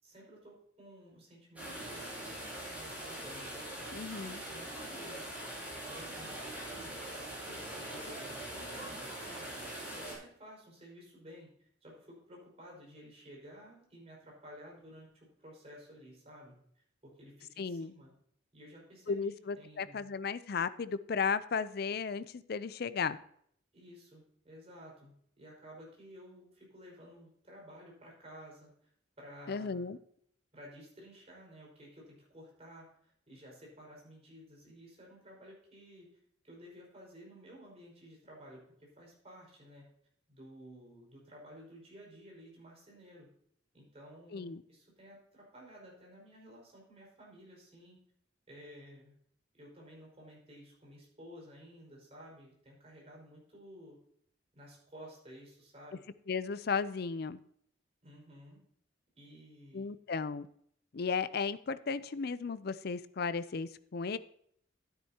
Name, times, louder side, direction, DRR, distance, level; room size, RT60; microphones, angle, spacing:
voice 1, 0.0-5.6 5.8-7.0 7.4-9.6 9.9-18.1 18.5-20.1 23.7-28.9 29.2-29.9 30.5-36.1 36.4-39.9 40.3-43.3 43.7-48.0 48.5-49.1 49.5-54.0 54.5-56.0 58.0-58.6 59.2-59.9, equal, 35° right, -3 dB, 5.0 m, -54 dB
sound 1, 1.6-10.1, right 1 dB, 10° right, 4.7 m, -42 dB
voice 2, 3.9-4.4 17.6-17.9 19.1-23.2 29.5-30.0 44.3-44.6 56.3-57.4 59.7-60.5 60.9-64.2, left 5 dB, 55° left, 15 dB, 0.5 m, -35 dB
12.5 x 9.9 x 2.9 m, 0.66 s
head